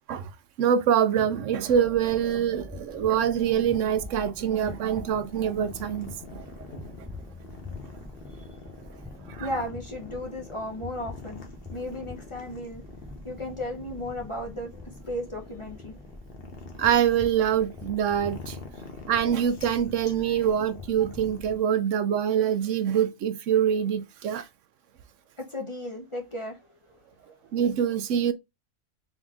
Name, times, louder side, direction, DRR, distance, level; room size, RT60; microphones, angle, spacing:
voice 1, 0.6-6.5 9.3-9.5 16.8-18.6 19.1-24.5 27.5-28.3, right 9 dB, 75° right, 0.9 m, -25 dB
sound 1, 1.7-21.6, left 2 dB, 5° left, 0.5 m, -45 dB
sound 2, 3.9-21.6, left 3 dB, 50° left, 1.1 m, -46 dB
voice 2, 9.4-11.5 11.7-12.8 13.2-16.0 25.4-26.6 27.2-27.3, left 1 dB, 30° left, 0.8 m, -35 dB
3.6 x 3.1 x 3.6 m
omnidirectional pair, 1.3 m